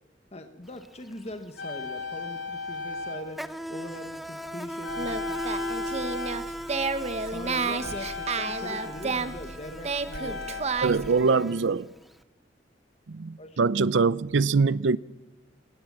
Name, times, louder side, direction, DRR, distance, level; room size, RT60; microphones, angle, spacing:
voice 1, 0.3-3.4 3.7-6.2 7.2-10.8 13.4-13.6, left 1 dB, 35° left, 1.2 m, -42 dB
Insect, 0.7-0.9 1.1-12.1, equal, ahead, 0.7 m, -38 dB
sound 1, 1.6-4.5 4.8-10.6, left 4 dB, 75° left, 4.4 m, -38 dB
Singing, 4.9-11.1, right 4 dB, 35° right, 1.1 m, -31 dB
voice 2, 10.8-11.9 13.1-15.0, right 4 dB, 85° right, 0.6 m, -23 dB
21.0 x 18.5 x 7.4 m
head